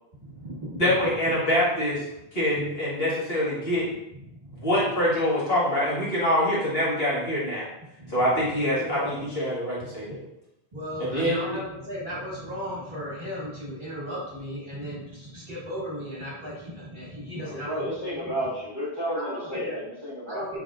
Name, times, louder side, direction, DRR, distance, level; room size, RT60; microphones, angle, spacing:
voice 1, 0.2-1.2 3.8-4.6 8.0-9.2 10.7-18.4 19.0-19.8 20.3-20.6, equal, 45° right, -5 dB, 1.7 m, -36 dB
voice 2, 0.8-2.0 2.3-3.9 4.5-7.7 8.1-10.2 11.0-11.4, left 1 dB, 60° left, -7 dB, 1.7 m, -25 dB
voice 3, 17.4-20.6, equal, 20° right, -7 dB, 1.3 m, -32 dB
5.8 x 3.3 x 2.4 m, 0.83 s
omnidirectional pair, 1.1 m